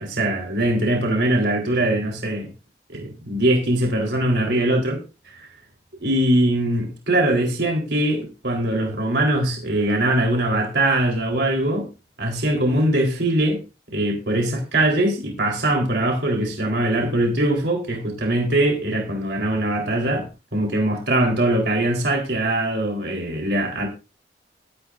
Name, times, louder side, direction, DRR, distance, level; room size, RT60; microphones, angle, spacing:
voice 1, 0.2-2.5 2.9-5.4 6.0-11.9 12.2-13.6 13.9-20.3 20.5-23.9, right 1 dB, 70° right, 4.0 m, -21 dB
13.5 x 13.0 x 2.6 m
head